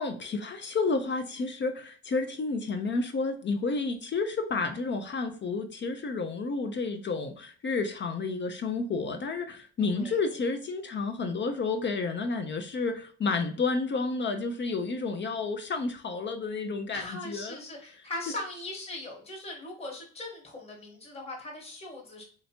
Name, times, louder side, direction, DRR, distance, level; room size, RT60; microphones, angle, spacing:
voice 1, 0.0-17.6, left 4 dB, 40° left, 0.5 m, -31 dB
voice 2, 9.8-10.2 16.9-22.2, left 2 dB, 20° left, 1.1 m, -40 dB
3.2 x 2.8 x 2.7 m
cardioid pair, 90°, 30 cm